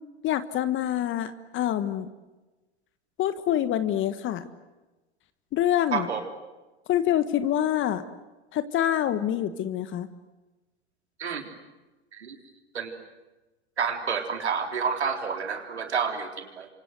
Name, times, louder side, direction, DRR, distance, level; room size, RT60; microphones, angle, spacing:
voice 1, 0.2-2.1 3.2-4.5 5.5-6.1 6.9-8.0 8.5-10.1, left 11 dB, 35° left, 12 dB, 1.5 m, -26 dB
voice 2, 5.9-6.2 11.2-11.5 12.1-12.4 12.7-12.9 13.8-16.7, right 6 dB, 80° right, 5 dB, 3.7 m, -29 dB
29.5 x 25.0 x 7.9 m, 1.1 s
hypercardioid pair, 90°, 33 cm